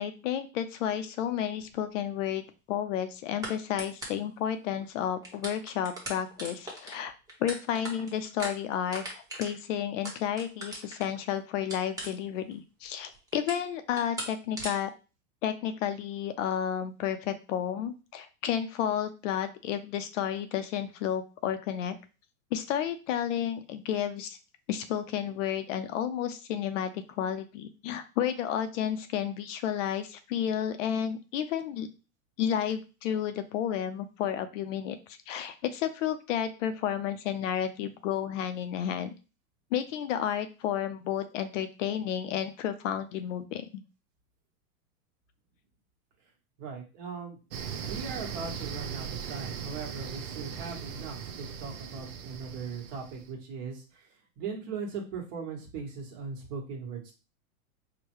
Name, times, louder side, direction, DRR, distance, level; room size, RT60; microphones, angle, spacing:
voice 1, 0.0-7.1 7.4-14.9 15.4-22.0 22.5-24.4 24.7-31.9 32.4-39.1 39.7-43.8, left 9 dB, 55° left, 9 dB, 0.5 m, -31 dB
sound 1, 1.6-1.8 3.4-3.5 3.8-4.3 4.8-4.9 5.2-11.2 11.7-12.5 12.8-13.7 13.9-14.3 14.6-14.7, right 1 dB, 10° right, 0.9 m, -38 dB
voice 2, 46.6-47.4 47.8-57.1, right 5 dB, 45° right, 1 dB, 1.3 m, -39 dB
sound 2, 47.5-53.3, right 7 dB, 65° right, 0.6 m, -39 dB
4.7 x 2.2 x 3.0 m, 0.32 s
supercardioid pair, 135°, 45 cm